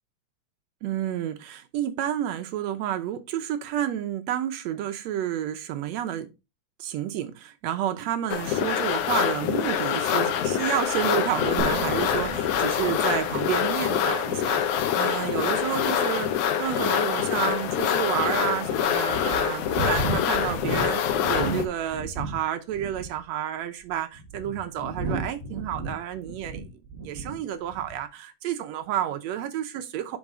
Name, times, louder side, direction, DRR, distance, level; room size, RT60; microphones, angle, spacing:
voice 1, 0.8-6.3 6.8-16.3 16.6-30.2, right 10 dB, 75° right, 1.7 m, -30 dB
sound 1, 8.3-21.7, left 9 dB, 75° left, 2.2 m, -25 dB
sound 2, 11.6-15.1, right 4 dB, 25° right, 2.2 m, -37 dB
sound 3, 16.9-17.0 17.6-17.7 18.4-18.5 19.1-22.4 22.7-23.2 23.9-27.4 27.7-28.0, right 2 dB, 55° right, 0.6 m, -33 dB
5.3 x 5.3 x 4.8 m
omnidirectional pair, 3.5 m